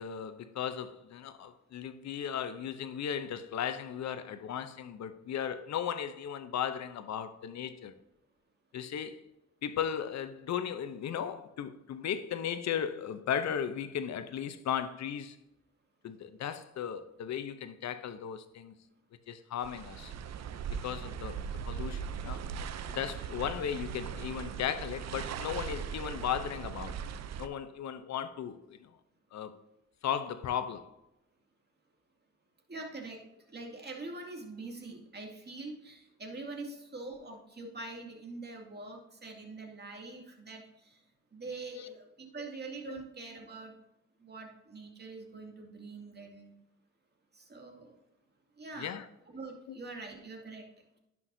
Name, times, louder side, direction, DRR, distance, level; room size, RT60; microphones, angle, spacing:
voice 1, 0.0-7.9 8.7-9.2 9.6-15.4 16.0-18.7 19.3-20.1 20.7-21.4 21.7-22.4 22.9-27.0 27.4-28.9 29.3-29.6 30.0-30.9 41.7-41.9 42.9-43.0 48.8-49.0, left 8 dB, 65° left, 0.7 m, -36 dB
sound 1, 19.6-27.5, right 7 dB, 65° right, 0.6 m, -39 dB
voice 2, 32.7-41.0 41.3-43.7 44.2-46.5 47.3-48.0 48.6-49.0 49.3-50.7, right 3 dB, 35° right, 2.3 m, -44 dB
11.0 x 6.1 x 2.7 m
supercardioid pair, 60°, 29 cm